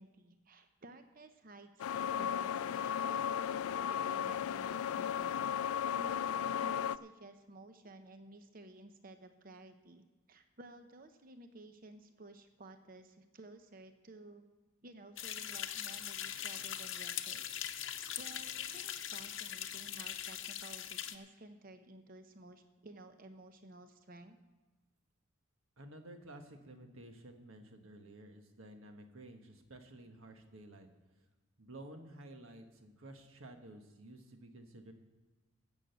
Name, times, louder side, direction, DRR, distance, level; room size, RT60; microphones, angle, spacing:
voice 1, 0.0-5.5 6.0-14.4 14.8-24.4, right 2 dB, 40° right, 8 dB, 0.7 m, -55 dB
sound 1, 1.8-7.0, left 8 dB, 90° left, 0.3 m, -35 dB
sound 2, 15.2-21.1, left 10 dB, 65° left, 0.8 m, -41 dB
voice 2, 25.8-30.9 31.6-34.9, right 1 dB, 75° right, 5 dB, 1.4 m, -53 dB
15.5 x 6.4 x 7.8 m, 1.2 s
head